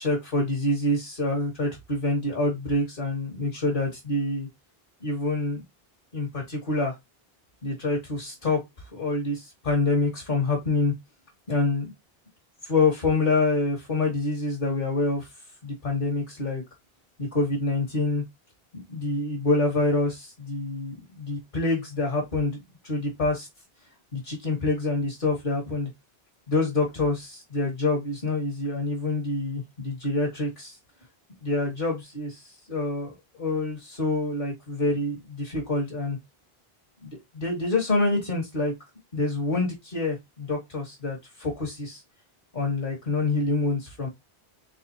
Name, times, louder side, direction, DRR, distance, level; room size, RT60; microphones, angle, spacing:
voice 1, 0.0-4.5 5.0-5.6 6.1-6.9 7.6-8.6 8.9-10.9 11.5-11.9 12.6-15.3 15.6-16.6 17.2-18.2 18.7-23.5 24.1-25.9 26.5-30.8 31.4-36.2 37.0-38.7 39.1-42.0 42.5-44.1, left 2 dB, 55° left, 1.7 m, -26 dB
4.1 x 3.8 x 2.7 m
omnidirectional pair, 1.0 m